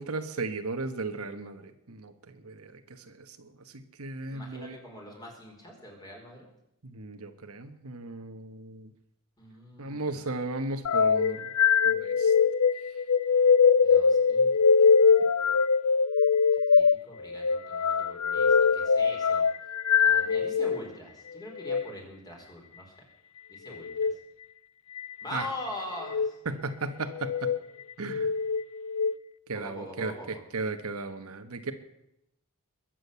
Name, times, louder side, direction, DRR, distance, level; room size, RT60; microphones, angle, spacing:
voice 1, 0.0-4.7 6.8-8.9 9.8-11.5 11.8-12.3 25.3-25.5 26.4-27.5 28.0-28.3 29.5-30.1 30.5-31.7, right 3 dB, 70° right, 8 dB, 1.3 m, -36 dB
voice 2, 4.3-6.4 9.4-10.2 13.8-14.5 16.7-19.4 20.0-23.0 23.5-24.1 25.2-26.4 29.5-30.4, left 1 dB, 20° left, 0 dB, 4.6 m, -42 dB
sound 1, 10.8-20.8 21.5-21.8 23.8-24.1 25.0-25.5 26.0-26.3 27.1-27.6 28.1-29.1, left 5 dB, 80° left, 0.6 m, -23 dB
21.5 x 7.7 x 8.2 m, 0.83 s
head